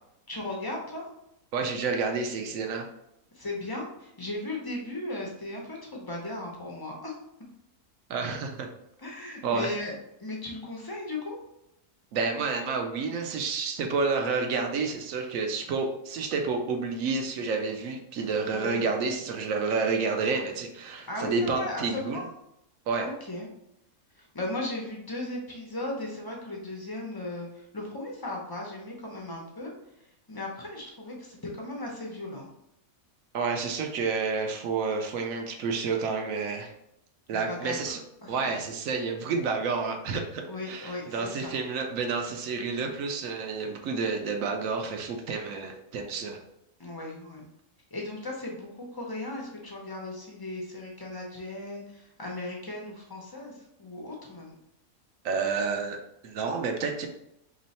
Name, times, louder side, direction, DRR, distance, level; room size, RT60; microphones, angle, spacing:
voice 1, 0.3-1.1 3.3-7.1 9.0-9.9 10.2-11.4 18.5-18.8 21.1-22.3 23.0-23.5 24.2-29.7 30.0-32.5 37.3-37.9 38.2-38.6 40.5-41.6 46.8-47.5 47.9-54.5, left 2 dB, 35° left, -2 dB, 0.3 m, -37 dB
voice 2, 1.5-2.9 8.1-8.7 9.4-9.7 12.1-22.2 22.9-23.1 33.3-36.7 37.3-38.0 38.3-46.4 55.2-56.0 56.2-57.1, right 4 dB, 75° right, 4 dB, 1.0 m, -29 dB
3.1 x 3.0 x 4.1 m, 0.82 s
omnidirectional pair, 1.5 m